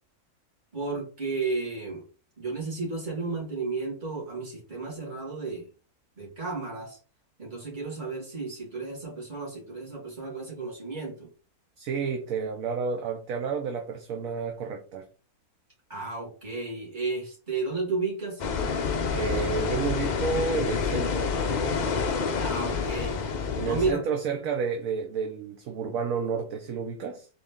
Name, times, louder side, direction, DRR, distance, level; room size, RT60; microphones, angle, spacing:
voice 1, 0.7-2.0 2.4-5.7 6.2-7.0 7.4-11.3 15.9-18.4 22.4-23.2 23.6-24.0, right 3 dB, 30° right, 2.1 m, -33 dB
voice 2, 11.8-15.1 19.1-21.4 23.6-27.3, right 5 dB, 70° right, 1.0 m, -30 dB
sound 1, 18.4-23.9, left 5 dB, 80° left, 0.4 m, -28 dB
3.8 x 3.2 x 3.5 m
omnidirectional pair, 1.6 m